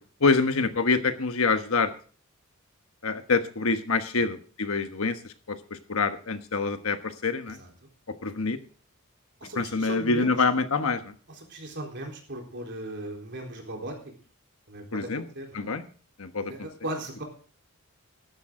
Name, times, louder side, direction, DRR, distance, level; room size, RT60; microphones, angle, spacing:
voice 1, 0.2-1.9 3.0-5.2 5.5-7.6 8.2-8.6 9.5-11.1 14.9-15.2 15.5-15.8 16.2-16.5, left 4 dB, 75° left, 8 dB, 1.3 m, -26 dB
voice 2, 9.4-10.4 11.3-14.0 14.7-15.7 16.5-17.2, right 1 dB, 55° right, 1 dB, 3.9 m, -38 dB
14.5 x 12.0 x 3.8 m, 0.41 s
head